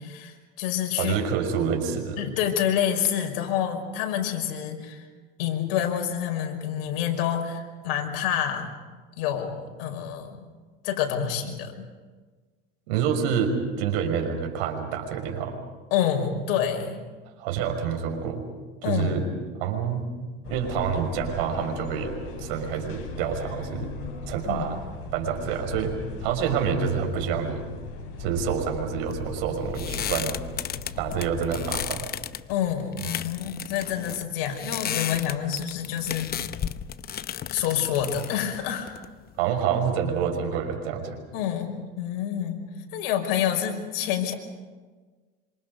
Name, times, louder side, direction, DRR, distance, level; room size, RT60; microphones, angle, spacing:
voice 1, 0.0-1.2 2.2-5.0 5.4-8.7 9.2-10.4 10.8-11.8 15.9-17.0 18.8-19.2 24.4-24.7 32.5-36.3 37.5-38.9 41.3-42.6 42.9-44.3, left 9 dB, 75° left, 3 dB, 5.6 m, -27 dB
voice 2, 1.0-2.2 12.9-15.6 17.4-18.4 18.8-19.3 19.6-20.0 20.5-22.1 22.4-23.9 24.3-24.8 25.1-27.6 28.2-30.4 31.0-32.1 33.0-33.1 39.4-41.2, right 7 dB, 75° right, 4 dB, 5.8 m, -27 dB
sound 1, 20.4-31.9, left 3 dB, 50° left, 7.7 m, -38 dB
sound 2, 29.1-39.5, left 10 dB, 30° left, 0.9 m, -34 dB
27.0 x 26.5 x 5.5 m, 1.4 s
supercardioid pair, 115°, 29 cm